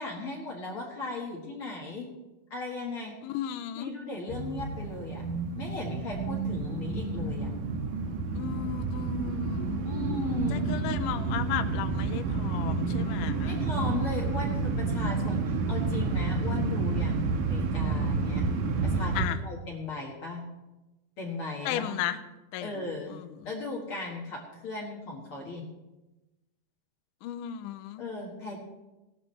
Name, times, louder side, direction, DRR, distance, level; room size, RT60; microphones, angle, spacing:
voice 1, 0.0-2.1 2.5-3.2 3.8-5.2 5.6-7.5 9.8-10.7 13.4-18.5 18.8-19.1 19.4-20.4 21.2-22.0 22.6-23.1 23.4-25.7 28.0-28.6, left 3 dB, 50° left, -2 dB, 1.8 m, -37 dB
voice 2, 3.2-3.9 8.4-9.8 10.5-13.6 19.2-19.4 21.6-22.2 22.5-23.3 27.2-28.0, left 11 dB, 80° left, 9 dB, 1.9 m, -35 dB
sound 1, 4.3-19.3, right 4 dB, 70° right, 2.0 m, -30 dB
17.5 x 12.0 x 3.3 m, 1.0 s
omnidirectional pair, 4.3 m